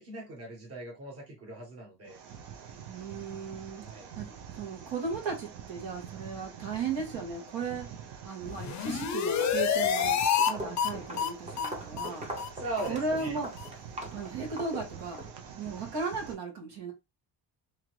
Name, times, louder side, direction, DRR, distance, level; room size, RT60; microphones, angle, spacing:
voice 1, 0.0-2.2 3.8-4.1 12.5-13.4, right 2 dB, 35° right, 1.2 m, -39 dB
sound 1, 2.0-16.3, right 8 dB, 70° right, 0.7 m, -46 dB
voice 2, 2.9-10.2 10.5-12.3 12.9-13.5 14.1-15.2 15.6-16.9, right 4 dB, 90° right, 1.4 m, -36 dB
sound 2, 8.5-10.5 10.8-10.9 11.2-11.3 11.6-11.7 12.0-12.1 12.4-12.5 12.8-12.9 13.2-13.3 13.6-13.7, left 8 dB, 45° left, 0.4 m, -28 dB
Walk footsteps, 8.6-8.9 9.3-15.3, equal, 15° right, 0.5 m, -42 dB
2.9 x 2.5 x 3.1 m
cardioid pair, 175°, 43 cm